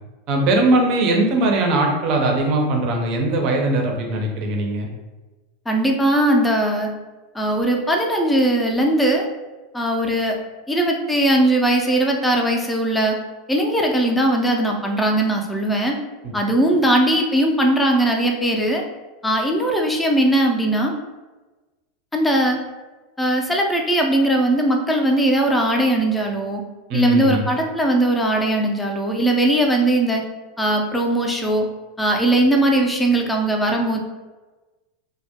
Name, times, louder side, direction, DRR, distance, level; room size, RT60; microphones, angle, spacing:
voice 1, 0.3-4.9 26.9-27.4, right 2 dB, 50° right, 2 dB, 0.5 m, -20 dB
voice 2, 5.7-6.9 7.3-9.3 9.7-10.4 10.7-13.2 13.5-16.0 16.3-18.8 19.2-20.9 22.1-22.6 23.2-26.6 26.9-30.2 30.6-31.7 32.0-34.0, right 1 dB, 10° left, 1 dB, 0.4 m, -19 dB
2.2 x 2.1 x 2.8 m, 1.2 s
hypercardioid pair, 110°, 0 cm